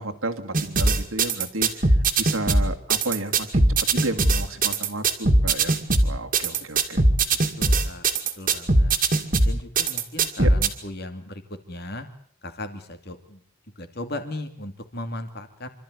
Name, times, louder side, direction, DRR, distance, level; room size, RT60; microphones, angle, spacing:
voice 1, 0.0-5.7 6.0-7.0 10.4-10.5, right 2 dB, 75° right, 5 dB, 2.2 m, -32 dB
sound 1, 0.5-10.7, right 2 dB, 40° right, 2.3 m, -20 dB
voice 2, 7.6-8.1 8.4-8.9 9.4-11.4 11.7-12.1 12.4-13.4 13.8-15.7, left 1 dB, 45° left, 7 dB, 2.6 m, -36 dB
26.5 x 13.5 x 9.7 m, 0.64 s
head